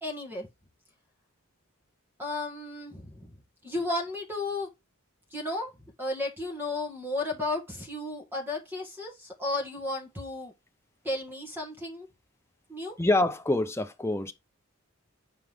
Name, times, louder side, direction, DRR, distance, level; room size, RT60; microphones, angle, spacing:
voice 1, 0.0-0.5 2.2-3.3 3.6-4.7 5.3-5.7 6.0-10.5 11.0-12.1 12.7-13.0, left 2 dB, 10° right, 1.7 m, -33 dB
voice 2, 13.0-14.3, left 2 dB, 10° left, 0.7 m, -26 dB
7.6 x 4.9 x 3.6 m
head